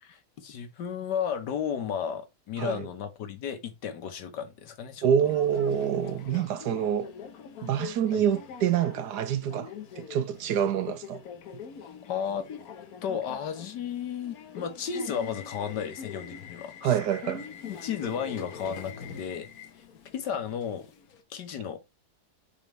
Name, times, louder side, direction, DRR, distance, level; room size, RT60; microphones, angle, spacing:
voice 1, 0.0-5.1 8.1-8.2 12.1-12.5 13.0-16.9 17.7-19.5 20.1-20.9 21.3-21.8, left 7 dB, 80° left, 1.7 m, -33 dB
voice 2, 5.0-7.1 7.6-9.7 10.0-11.2 16.8-17.5, right 9 dB, 75° right, 1.3 m, -26 dB
Subway metro underground, 5.2-21.2, left 7 dB, 65° left, 1.3 m, -43 dB
5.5 x 4.3 x 4.3 m
omnidirectional pair, 1.8 m